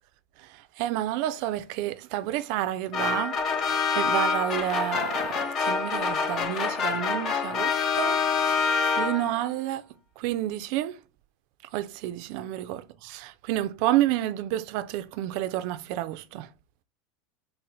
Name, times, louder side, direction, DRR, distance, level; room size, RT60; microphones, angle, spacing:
voice 1, 0.4-9.8 10.2-11.0 11.7-16.5, right 13 dB, 55° right, 0.4 m, -30 dB
sound 1, 2.9-9.5, left 5 dB, 35° left, 0.6 m, -26 dB
4.3 x 2.1 x 3.9 m
supercardioid pair, 145°, 0 cm